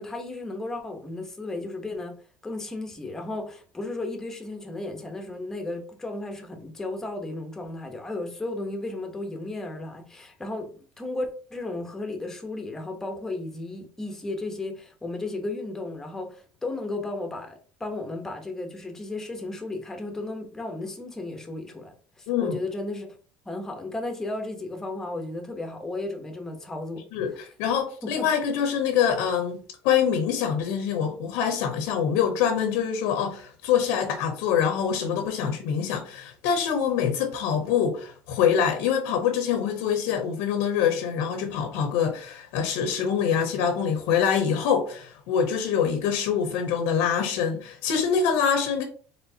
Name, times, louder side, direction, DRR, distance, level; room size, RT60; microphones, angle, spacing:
voice 1, 0.0-2.2 2.4-23.1 23.5-27.0 28.0-28.3, left 2 dB, 10° left, 0.9 m, -34 dB
voice 2, 22.3-22.6 27.1-48.8, left 7 dB, 90° left, 0.8 m, -25 dB
4.3 x 3.3 x 2.8 m
cardioid pair, 135°, 4 cm